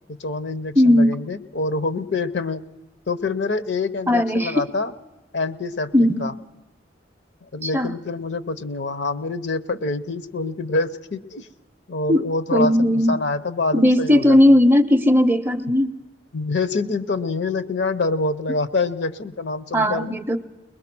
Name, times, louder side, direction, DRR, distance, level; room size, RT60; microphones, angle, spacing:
voice 1, 0.1-2.6 3.1-4.9 5.3-5.9 6.2-6.3 7.5-11.5 11.9-14.4 16.3-20.1, left 3 dB, 65° left, 12 dB, 0.8 m, -26 dB
voice 2, 0.8-1.2 4.1-4.7 5.9-6.3 7.6-7.9 12.1-12.2 12.5-13.2 13.7-16.0 19.7-20.4, left 1 dB, 10° right, 10 dB, 0.6 m, -17 dB
22.0 x 21.0 x 6.0 m, 1.1 s
head